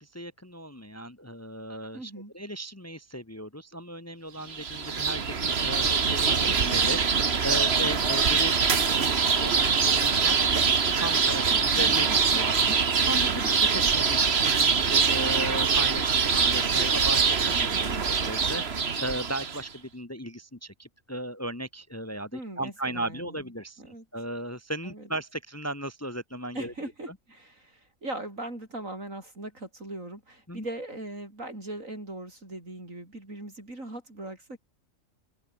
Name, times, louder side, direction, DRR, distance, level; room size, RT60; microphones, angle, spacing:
voice 1, 0.0-17.5 17.8-26.7 27.1-27.2 30.5-30.6, right 1 dB, 10° left, 1.2 m, -36 dB
voice 2, 1.9-2.3 6.3-6.6 11.5-12.4 17.5-17.9 22.3-23.4 23.8-24.0 24.8-25.1 26.5-34.6, right 1 dB, 75° right, 7.8 m, -40 dB
sound 1, 4.5-19.6, right 5 dB, 50° right, 1.7 m, -24 dB
omnidirectional pair, 1.4 m